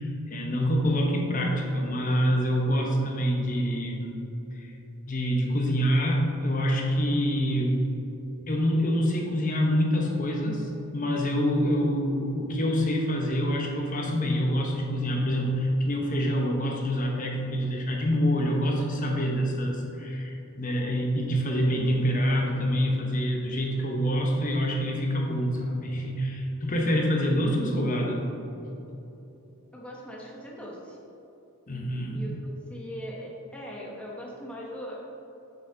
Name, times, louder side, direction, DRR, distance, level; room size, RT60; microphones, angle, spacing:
voice 1, 0.0-4.2 4.5-4.7 5.1-7.9 8.5-28.3 31.7-32.2, equal, 35° left, 0 dB, 1.0 m, -26 dB
voice 2, 29.7-31.0 32.1-35.0, equal, 5° left, -4 dB, 0.9 m, -40 dB
8.2 x 7.0 x 3.9 m, 3.0 s
head